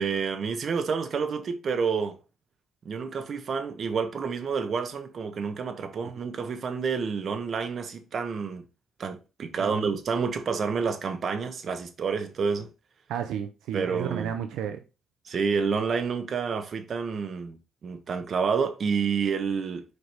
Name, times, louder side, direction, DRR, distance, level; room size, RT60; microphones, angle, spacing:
voice 1, 0.0-2.2 2.8-8.6 9.0-12.7 13.7-14.4 15.2-19.8, right 5 dB, 50° right, 1.2 m, -29 dB
voice 2, 9.6-9.9 13.1-14.8, right 9 dB, 90° right, 0.6 m, -33 dB
5.0 x 4.8 x 4.0 m
cardioid pair, 90°, 0 cm